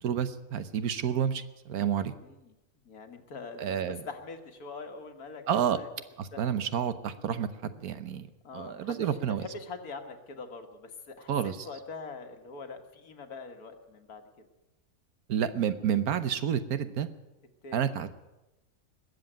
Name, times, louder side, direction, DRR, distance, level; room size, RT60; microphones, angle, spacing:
voice 1, 0.0-2.1 3.6-4.0 5.5-5.8 6.2-8.3 8.5-9.5 11.3-11.7 15.3-17.1 17.7-18.1, right 8 dB, 80° right, 12 dB, 1.4 m, -29 dB
voice 2, 2.2-2.5 2.8-5.9 6.3-6.5 8.4-14.5 17.6-17.9, left 4 dB, 85° left, 6 dB, 2.0 m, -44 dB
20.5 x 7.9 x 8.9 m, 1.0 s
omnidirectional pair, 1.5 m